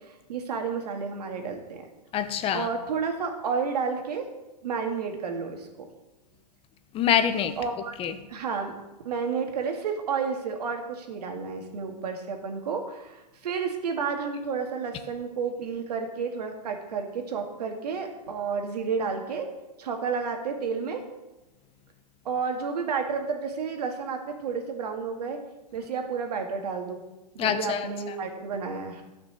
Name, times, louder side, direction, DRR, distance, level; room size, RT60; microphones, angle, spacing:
voice 1, 0.1-1.9 2.5-4.3 4.6-5.9 7.6-8.0 8.3-8.7 9.0-19.5 19.8-21.0 22.2-25.4 25.7-27.0 27.3-29.0, right 5 dB, 70° right, 2.1 m, -31 dB
voice 2, 2.1-2.7 6.9-7.6 8.0-8.1 27.4-28.1, left 9 dB, 25° left, 1.0 m, -25 dB
13.0 x 6.1 x 6.4 m
hypercardioid pair, 115°, 21 cm